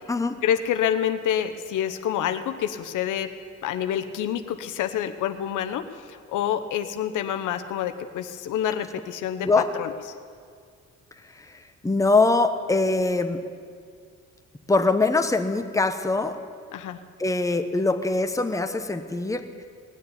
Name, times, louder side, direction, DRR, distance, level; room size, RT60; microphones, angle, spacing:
voice 1, 0.4-3.3 3.6-9.9 16.7-17.0, left 10 dB, 85° left, 8 dB, 0.9 m, -27 dB
voice 2, 11.8-13.4 14.7-16.4 17.2-19.4, left 3 dB, 10° left, 7 dB, 1.0 m, -22 dB
18.5 x 6.9 x 9.9 m, 2.1 s
cardioid pair, 90°, 30 cm